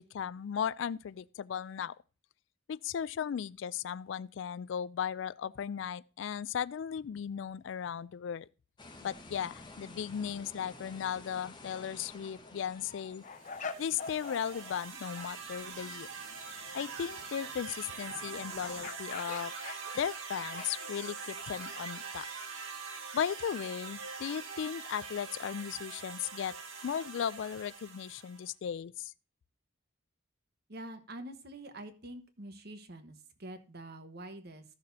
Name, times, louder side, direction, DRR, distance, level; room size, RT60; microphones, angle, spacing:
voice 1, 0.0-1.9 2.7-8.5 9.0-13.2 13.8-16.1 16.7-19.5 19.9-22.3 23.1-26.5 26.8-29.1, left 8 dB, 65° left, 0.3 m, -36 dB
sound 1, 8.8-18.9, left 2 dB, 20° left, 1.2 m, -54 dB
sound 2, 11.6-11.9 12.3-14.9 15.2-15.3 18.6-21.0, left 5 dB, 40° left, 0.9 m, -44 dB
sound 3, 13.4-28.5, right 5 dB, 90° right, 1.8 m, -43 dB
voice 2, 30.7-34.6, right 1 dB, 50° right, 1.2 m, -46 dB
15.0 x 6.6 x 2.7 m
head